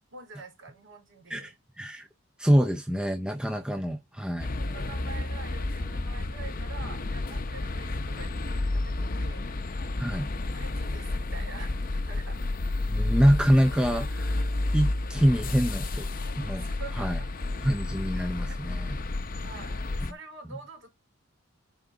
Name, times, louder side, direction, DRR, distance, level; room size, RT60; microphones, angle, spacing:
voice 1, 0.1-1.6 4.1-4.2 4.6-9.4 10.5-12.4 16.6-17.3 18.4-18.6 19.4-20.9, right 4 dB, 60° right, 4.1 m, -46 dB
voice 2, 1.3-2.1 2.4-4.5 10.0-10.3 12.9-16.1 16.4-16.6 17.0-17.2 17.6-18.9, equal, 5° right, 0.5 m, -25 dB
sound 1, 4.4-20.1, left 2 dB, 40° left, 0.7 m, -31 dB
10.5 x 3.9 x 3.8 m
head